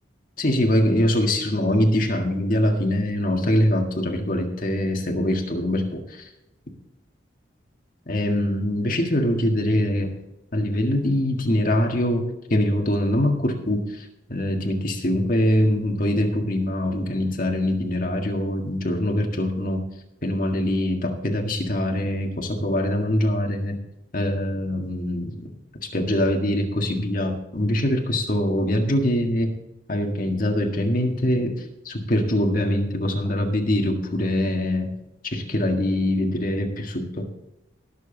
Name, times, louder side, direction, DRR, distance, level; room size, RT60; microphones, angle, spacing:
voice 1, 0.4-6.3 8.1-10.1 10.5-19.8 20.2-23.8 24.1-25.3 25.8-29.5 29.9-31.5 31.9-34.9 35.2-37.3, left 1 dB, 45° left, 2 dB, 1.7 m, -23 dB
19.0 x 7.1 x 3.9 m, 0.92 s
head